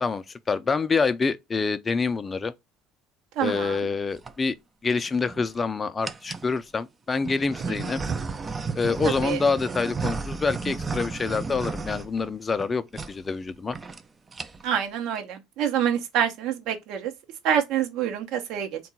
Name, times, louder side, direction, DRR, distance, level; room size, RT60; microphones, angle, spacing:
voice 1, 0.0-2.5 3.4-4.5 4.8-8.0 8.8-13.8, left 4 dB, 25° left, 0.5 m, -26 dB
voice 2, 3.4-3.8 9.0-9.4 14.6-17.1 17.4-18.8, right 9 dB, 60° right, 0.8 m, -26 dB
sound 1, 3.9-4.3 5.0-5.6 6.0-6.5 7.2-12.7 12.9-13.1 13.4-13.5 13.7-14.0 14.3-14.8, right 4 dB, 25° right, 0.4 m, -33 dB
3.6 x 2.3 x 4.1 m
hypercardioid pair, 65°, 0 cm